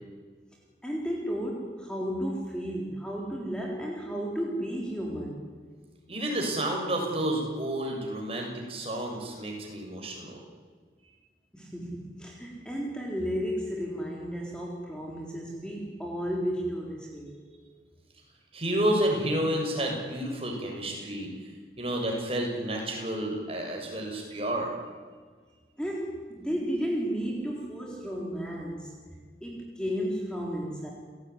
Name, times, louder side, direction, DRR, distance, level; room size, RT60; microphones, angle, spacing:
voice 1, 0.8-5.5 11.5-17.4 25.8-29.0 29.4-30.9, equal, 5° left, -1 dB, 3.8 m, -33 dB
voice 2, 6.1-10.4 18.5-21.3 21.8-24.7, right 1 dB, 35° right, 0 dB, 7.1 m, -30 dB
30.0 x 17.5 x 9.9 m, 1.5 s
head